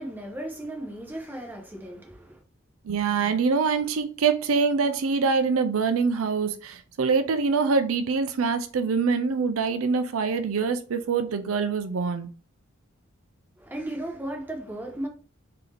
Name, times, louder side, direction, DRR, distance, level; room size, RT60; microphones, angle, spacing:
voice 1, 0.0-2.4 13.6-15.1, right 1 dB, 10° right, 0.9 m, -35 dB
voice 2, 2.8-12.3, right 5 dB, 85° right, 0.5 m, -24 dB
3.8 x 2.8 x 3.3 m
head